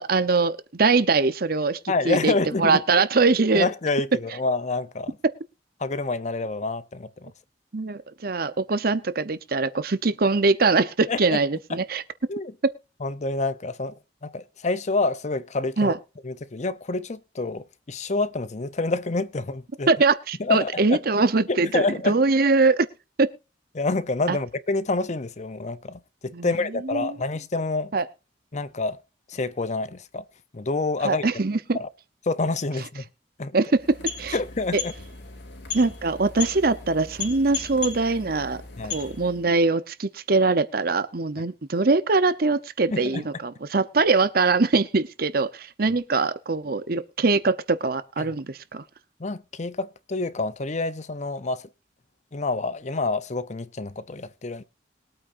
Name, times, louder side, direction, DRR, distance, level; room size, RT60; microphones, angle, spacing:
voice 1, 0.0-1.8 2.0-3.7 7.7-12.0 15.8-16.0 19.9-22.9 23.2-23.3 24.3-24.4 26.3-27.2 27.9-28.0 31.0-31.8 33.5-33.8 34.2-34.4 34.7-34.8 35.7-38.6 38.9-48.8, right 3 dB, 55° right, 0.8 m, -22 dB
voice 2, 1.9-3.0 3.5-5.2 5.8-7.3 11.1-11.4 12.3-12.5 13.0-13.9 14.2-15.9 16.2-19.9 20.4-21.0 21.5-22.2 23.7-27.9 28.5-29.0 29.3-30.2 30.5-31.3 31.7-31.9 32.2-33.0 33.4-33.6 34.3-34.9 38.8-39.0 42.9-43.3 48.2-48.3 49.2-51.7 52.3-54.6, left 3 dB, 40° left, 0.7 m, -27 dB
sound 1, 33.7-39.5, left 6 dB, 75° left, 3.0 m, -36 dB
21.5 x 8.8 x 2.6 m
head